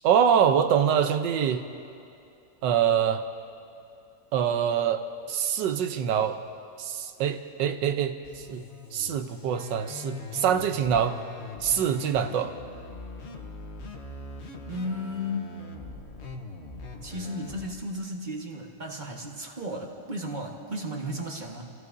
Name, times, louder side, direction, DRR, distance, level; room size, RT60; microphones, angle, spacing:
voice 1, 0.0-1.6 2.6-3.2 4.3-5.0 5.3-6.4 6.8-8.6 8.9-11.2 11.6-12.5, right 8 dB, 85° right, 8 dB, 1.4 m, -24 dB
sound 1, 8.2-17.7, left 3 dB, 45° left, 1.1 m, -41 dB
voice 2, 14.7-15.6 17.0-21.7, left 1 dB, 30° right, 1 dB, 1.3 m, -34 dB
28.0 x 15.5 x 2.7 m, 2.7 s
omnidirectional pair, 1.9 m